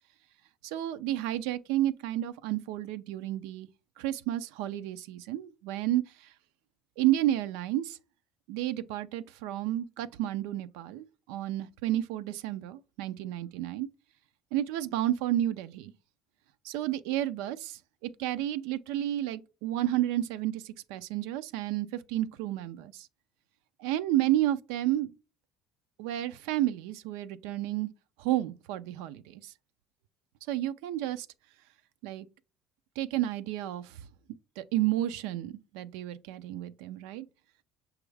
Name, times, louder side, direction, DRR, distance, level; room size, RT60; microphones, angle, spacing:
voice 1, 0.6-3.7 4.0-6.3 7.0-8.0 8.5-13.9 14.5-15.9 16.6-23.1 23.8-25.1 26.0-27.9 28.2-29.5 30.5-31.3 32.0-32.3 33.0-34.0 34.6-37.3, right 13 dB, 90° right, 0.3 m, -31 dB
6.0 x 2.3 x 3.2 m
cardioid pair, 115°, 0 cm